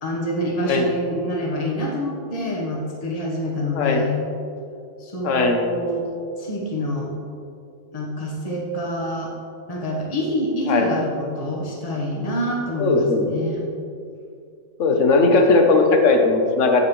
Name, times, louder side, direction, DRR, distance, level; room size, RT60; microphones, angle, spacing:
voice 1, 0.0-4.2 5.0-6.1 6.4-7.1 7.9-9.3 9.7-13.7, equal, 30° left, -3 dB, 1.3 m, -26 dB
voice 2, 3.7-4.1 5.2-5.6 10.7-11.0 12.8-13.4 14.8-16.8, left 3 dB, 65° left, 3 dB, 1.2 m, -18 dB
9.4 x 8.2 x 3.2 m, 2.5 s
omnidirectional pair, 1.4 m